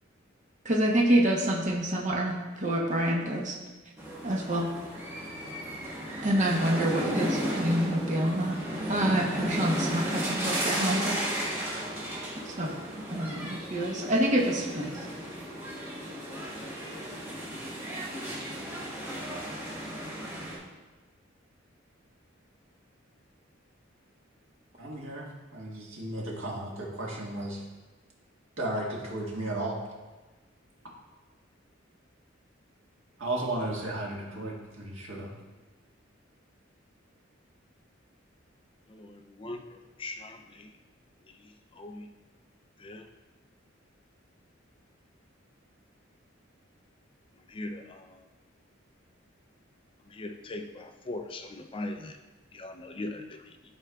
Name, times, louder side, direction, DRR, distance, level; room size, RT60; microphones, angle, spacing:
voice 1, 0.6-3.6 4.2-4.7 6.2-8.6 8.9-11.2 12.5-12.7 13.0-14.9, right 1 dB, 40° right, -1 dB, 0.9 m, -27 dB
sound 1, 4.0-20.6, equal, 15° right, 1.3 m, -34 dB
voice 2, 24.8-27.6 28.6-29.8 33.2-35.3, right 1 dB, 80° right, -3 dB, 1.6 m, -34 dB
voice 3, 38.9-39.6 40.0-40.7 41.8-42.1 42.8-43.0 47.5-48.1 50.1-52.1 52.5-53.2, left 2 dB, 25° left, 5 dB, 0.4 m, -39 dB
11.5 x 4.5 x 2.3 m, 1.2 s
head